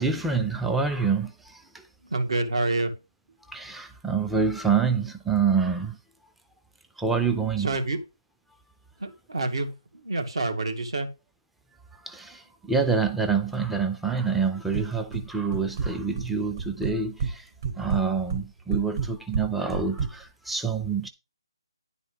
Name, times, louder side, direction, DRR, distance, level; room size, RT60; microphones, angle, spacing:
voice 1, 0.0-1.8 3.5-6.0 7.0-7.7 12.0-17.5 17.7-21.1, right 5 dB, ahead, 0.3 m, -27 dB
voice 2, 2.0-2.9 7.6-8.0 9.0-11.1, right 2 dB, 75° right, 2.2 m, -28 dB
sound 1, 14.7-15.3 15.5-16.3 16.6-17.3 17.6-20.1, right 5 dB, 40° right, 1.1 m, -29 dB
10.0 x 4.1 x 5.3 m
hypercardioid pair, 160°, 3 cm